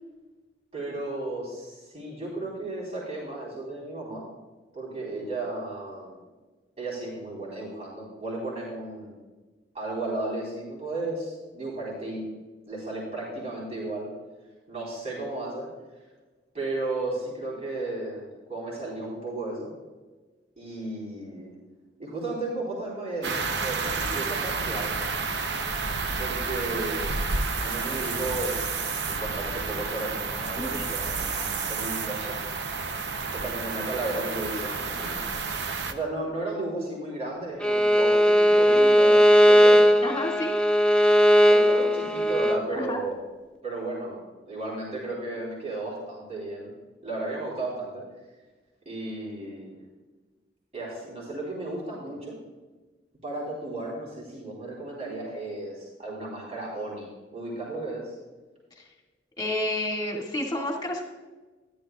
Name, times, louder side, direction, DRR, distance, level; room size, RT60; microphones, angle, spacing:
voice 1, 0.7-4.2 4.7-6.2 6.8-9.2 9.7-12.2 12.7-14.1 14.7-15.7 16.5-18.2 18.5-19.7 20.6-21.5 22.0-24.9 26.2-27.2 27.6-28.7 29.0-32.4 33.3-35.2 35.9-39.9 41.4-43.2 43.6-46.7 47.0-48.0 48.9-49.7 50.7-52.4 53.2-58.2, right 2 dB, 35° right, -4 dB, 3.8 m, -34 dB
sound 1, 23.2-35.9, right 4 dB, 65° right, 0.8 m, -30 dB
voice 2, 30.6-30.9 40.0-40.5 42.7-43.0 58.8-58.9 59.4-61.0, left 1 dB, 20° left, -1 dB, 2.1 m, -30 dB
Bowed string instrument, 37.6-42.6, equal, 5° left, 0.3 m, -18 dB
13.5 x 11.5 x 2.4 m, 1.3 s
head